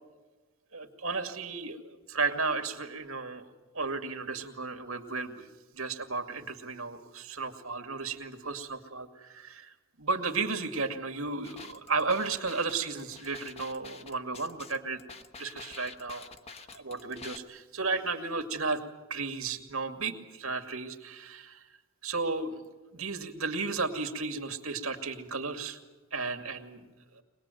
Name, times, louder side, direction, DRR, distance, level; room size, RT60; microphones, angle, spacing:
voice 1, 0.7-1.8 2.1-15.0 15.4-16.3 16.7-18.8 19.1-21.7 22.0-22.5 22.9-25.8 26.1-26.9 27.1-27.2, right 4 dB, 85° right, 6 dB, 2.3 m, -34 dB
sound 1, 11.4-17.4, left 4 dB, 30° left, 1.1 m, -47 dB
24.5 x 20.0 x 9.2 m, 1.2 s
head